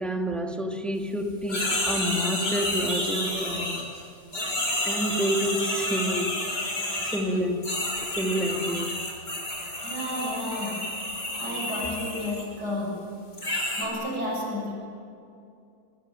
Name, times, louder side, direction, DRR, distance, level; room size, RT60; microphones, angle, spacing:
voice 1, 0.0-3.9 4.8-6.4 7.0-7.7 8.0-8.9, equal, ahead, 2.3 m, -29 dB
sound 1, 1.5-4.0 4.3-7.2 7.6-12.5 13.3-13.9, left 1 dB, 65° left, 7.3 m, -30 dB
voice 2, 9.8-10.9 11.4-13.1 13.8-14.7, left 1 dB, 65° right, 8.0 m, -31 dB
27.0 x 24.5 x 8.9 m
omnidirectional pair, 1.9 m